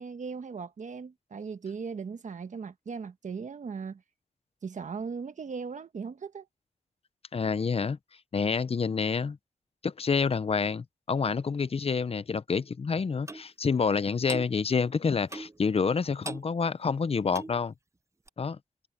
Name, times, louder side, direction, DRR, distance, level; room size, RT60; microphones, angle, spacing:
voice 1, 0.0-4.0 4.6-6.5, right 5 dB, 70° right, 1.4 m, -38 dB
voice 2, 7.3-8.0 8.3-9.4 9.8-17.7 18.4-18.6, left 5 dB, 50° left, 0.7 m, -28 dB
Clock, 13.3-13.5 14.3-14.5 15.3-15.6 16.2-16.5 17.3-17.6 18.3-18.4, right 2 dB, 20° right, 0.6 m, -39 dB
cardioid pair, 55°, 13 cm